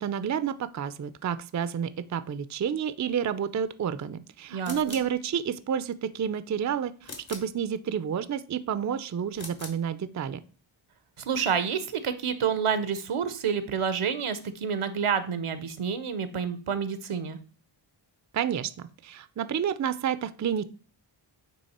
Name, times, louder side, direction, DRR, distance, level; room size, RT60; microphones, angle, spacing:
voice 1, 0.0-10.4 18.3-20.6, right 8 dB, 40° right, 14 dB, 0.4 m, -30 dB
voice 2, 4.5-5.0 11.2-17.4, right 7 dB, 80° right, 12 dB, 0.7 m, -29 dB
sound 1, 4.6-5.2 7.0-7.6 9.3-9.9, left 3 dB, 65° left, 1.6 m, -42 dB
8.5 x 3.2 x 4.2 m, 0.39 s
wide cardioid pair, 70°, 50 cm